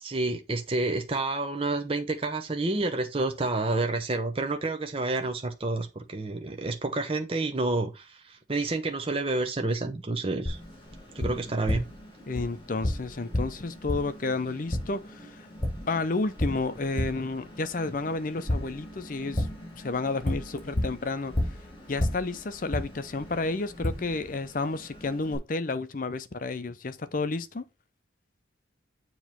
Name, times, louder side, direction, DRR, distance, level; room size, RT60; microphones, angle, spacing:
voice 1, 0.0-10.6 11.1-11.9, right 2 dB, 30° right, 0.7 m, -29 dB
Tap, 10.5-25.4, left 1 dB, 25° left, 2.5 m, -34 dB
voice 2, 12.3-15.5 15.9-19.5 19.8-21.3 21.9-27.6, left 3 dB, 45° left, 0.6 m, -31 dB
7.1 x 3.0 x 5.6 m
head